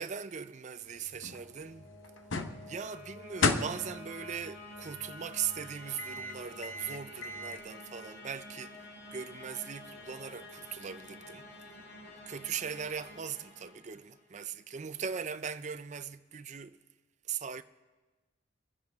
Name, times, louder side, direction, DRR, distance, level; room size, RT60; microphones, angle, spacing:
voice 1, 0.0-1.9 2.7-8.8 9.1-11.5 12.3-16.8 17.3-17.6, right 7 dB, 40° right, 0.5 m, -39 dB
sound 1, 0.8-7.6, left 3 dB, 90° left, 0.9 m, -37 dB
sound 2, 1.3-14.3, left 2 dB, 55° left, 1.8 m, -49 dB
25.5 x 10.5 x 3.6 m
head